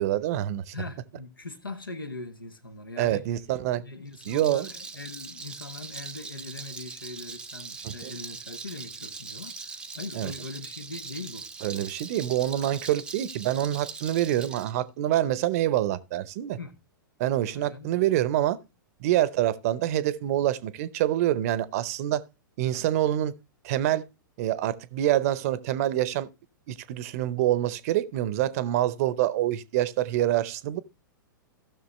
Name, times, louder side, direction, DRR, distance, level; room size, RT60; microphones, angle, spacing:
voice 1, 0.0-0.7 3.0-3.8 4.3-4.7 7.8-8.1 10.2-10.3 11.6-16.6 17.2-18.6 19.0-22.2 22.6-23.3 23.6-24.0 24.4-26.3 26.7-30.8, right 13 dB, 45° right, 0.7 m, -26 dB
voice 2, 0.7-3.2 3.8-11.5 16.6-16.8 17.5-18.0, left 3 dB, 85° left, 1.2 m, -41 dB
Rattle, 4.1-14.7, right 4 dB, 10° right, 0.6 m, -41 dB
15.5 x 6.3 x 3.1 m
figure-of-eight pair, 105°, 11 cm